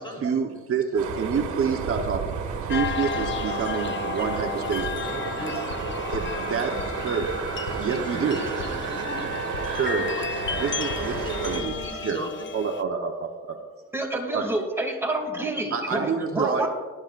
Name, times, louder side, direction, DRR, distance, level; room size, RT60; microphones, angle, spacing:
voice 1, 0.2-5.1 5.5-5.6 6.1-7.3 7.7-8.4 9.7-10.1 10.6-11.2 11.4-12.2 12.5-13.6 14.3-14.5 15.7-16.7, right 6 dB, 45° right, 2 dB, 1.1 m, -28 dB
sound 1, 1.0-11.6, right 6 dB, 75° right, 1.7 m, -32 dB
sound 2, 2.7-12.8, left 7 dB, 40° left, 0.7 m, -34 dB
voice 2, 4.9-5.7 7.7-9.3 10.1-10.4 11.1-12.3, left 1 dB, 15° left, 0 dB, 3.9 m, -38 dB
sound 3, 5.7-11.9, left 3 dB, 85° left, 2.0 m, -38 dB
voice 3, 13.9-16.7, right 2 dB, 10° right, 0 dB, 2.6 m, -28 dB
18.5 x 12.5 x 2.6 m, 1.5 s
cardioid pair, 90°, 30 cm